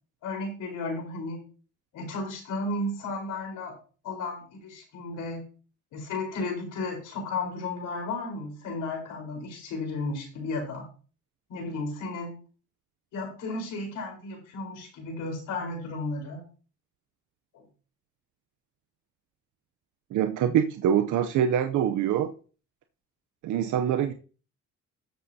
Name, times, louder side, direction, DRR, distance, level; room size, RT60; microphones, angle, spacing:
voice 1, 0.2-1.4 1.9-3.7 4.0-5.4 5.9-10.8 11.5-12.4 13.1-16.4 17.5-17.6, left 2 dB, 85° left, 2 dB, 4.4 m, -34 dB
voice 2, 20.1-22.3 23.4-24.1, right 9 dB, 80° right, 8 dB, 0.7 m, -24 dB
13.0 x 7.6 x 2.8 m, 0.38 s
cardioid pair, 90°, 30 cm